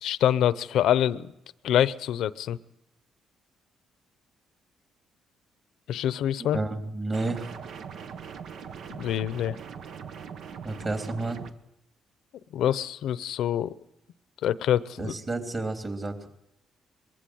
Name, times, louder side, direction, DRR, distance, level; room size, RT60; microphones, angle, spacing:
voice 1, 0.0-1.3 1.6-2.6 5.9-6.6 9.0-9.6 12.5-13.7 14.4-15.1, left 11 dB, 80° left, 16 dB, 0.8 m, -25 dB
voice 2, 6.4-7.5 10.6-11.4 15.0-16.3, right 2 dB, 30° right, 4 dB, 3.4 m, -31 dB
sound 1, 7.1-11.5, right 7 dB, 70° right, 1.1 m, -41 dB
22.0 x 15.0 x 7.8 m, 0.85 s
cardioid pair, 90°, 0 cm